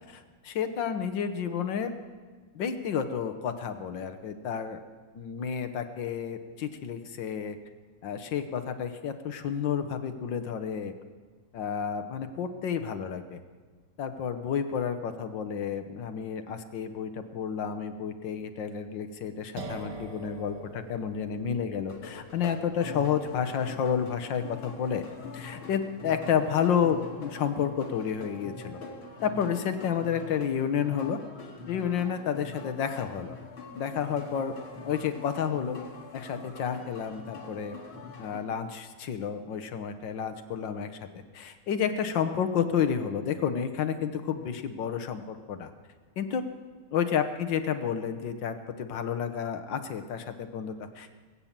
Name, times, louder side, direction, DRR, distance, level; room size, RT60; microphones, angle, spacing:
voice 1, 0.1-1.9 2.6-4.8 5.2-7.6 8.0-10.9 11.5-13.4 14.0-25.0 25.3-28.8 29.2-31.2 31.7-33.4 33.7-34.5 34.9-35.8 36.1-37.8 38.2-40.9 41.3-45.7 46.2-46.4 46.9-51.1, left 7 dB, 70° left, 8 dB, 1.6 m, -30 dB
sound 1, 19.6-27.1, right 2 dB, 60° right, 2.1 m, -47 dB
sound 2, 21.9-38.4, left 4 dB, 85° left, 2.8 m, -44 dB
21.5 x 8.6 x 7.3 m, 1.5 s
omnidirectional pair, 2.2 m